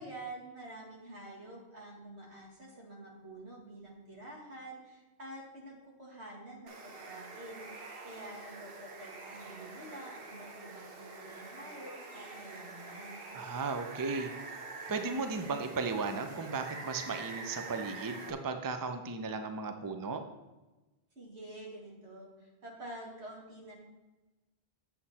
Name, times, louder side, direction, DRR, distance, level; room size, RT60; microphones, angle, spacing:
voice 1, 0.0-13.2 21.2-23.7, right 1 dB, 85° right, -2 dB, 2.3 m, -48 dB
Water, 6.7-18.3, right 3 dB, 60° right, 1.1 m, -46 dB
voice 2, 13.3-14.3 14.9-20.2, right 4 dB, 25° right, 7 dB, 0.5 m, -35 dB
8.0 x 7.4 x 4.2 m, 1.1 s
omnidirectional pair, 1.1 m